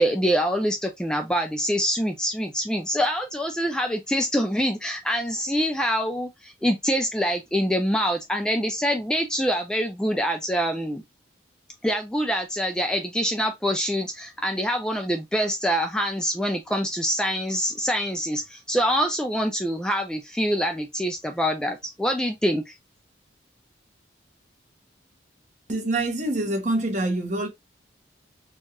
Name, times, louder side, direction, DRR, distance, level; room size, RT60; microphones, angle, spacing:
voice 1, 0.0-11.0 11.8-22.7, equal, 5° left, 0.3 m, -25 dB
voice 2, 25.7-27.5, right 2 dB, 40° right, 1.2 m, -25 dB
4.5 x 2.4 x 2.9 m
head